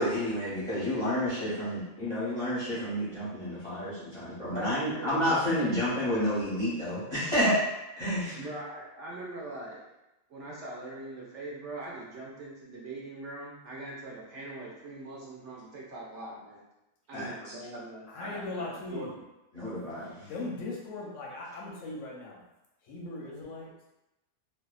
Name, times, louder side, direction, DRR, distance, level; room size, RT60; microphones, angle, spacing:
voice 1, 0.0-7.6 8.0-8.3 17.1-17.3 19.5-20.2, equal, 35° left, -10 dB, 0.5 m, -29 dB
voice 2, 4.4-5.5 8.3-9.9 10.3-16.6 17.1-19.1, right 2 dB, 65° right, -4 dB, 0.7 m, -42 dB
voice 3, 18.1-19.2 20.2-22.4 22.8-23.7, left 2 dB, 65° left, -3 dB, 0.8 m, -39 dB
2.7 x 2.2 x 2.3 m, 0.93 s
omnidirectional pair, 1.7 m